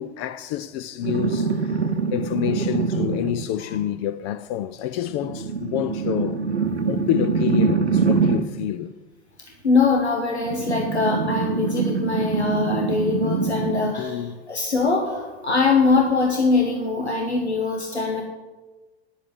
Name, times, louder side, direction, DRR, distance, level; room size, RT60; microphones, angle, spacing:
voice 1, 0.0-6.4 6.9-8.9 14.0-14.4, left 11 dB, 25° left, 0.4 m, -28 dB
sound 1, 1.0-3.5 5.1-8.6 10.4-14.0 15.6-15.7, right 5 dB, 80° right, 0.8 m, -24 dB
voice 2, 9.6-18.2, left 4 dB, 85° left, 1.4 m, -22 dB
10.5 x 7.7 x 7.8 m
figure-of-eight pair, 90°, 33 cm